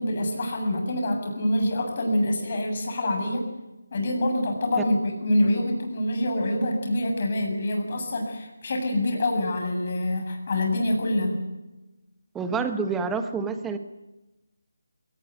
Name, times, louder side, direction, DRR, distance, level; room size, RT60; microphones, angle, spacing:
voice 1, 0.0-3.5 3.9-11.4, left 1 dB, 40° left, 3 dB, 7.5 m, -26 dB
voice 2, 12.3-13.8, right 5 dB, 5° right, 8 dB, 1.4 m, -28 dB
22.0 x 18.5 x 9.4 m, 1.0 s
figure-of-eight pair, 170°, 0 cm